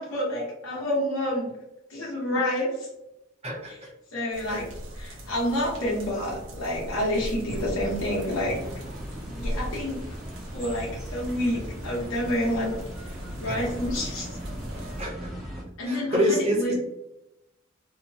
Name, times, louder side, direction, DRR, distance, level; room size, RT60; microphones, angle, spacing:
voice 1, 0.0-1.5 1.9-2.9 3.7-3.8 4.1-4.6 4.9-8.6 9.3-10.0 10.5-12.7 13.0-13.1 13.4-14.4 15.8-16.7, left 1 dB, 85° left, -4 dB, 1.0 m, -28 dB
voice 2, 3.4-3.9 4.5-4.7 13.5-13.6 15.0-15.3 15.9-16.7, equal, 30° right, -4 dB, 0.8 m, -27 dB
sound 1, 4.3-15.0, equal, 60° right, 0.7 m, -39 dB
sound 2, 7.5-15.6, equal, ahead, 0.5 m, -38 dB
2.9 x 2.0 x 2.7 m, 0.87 s
head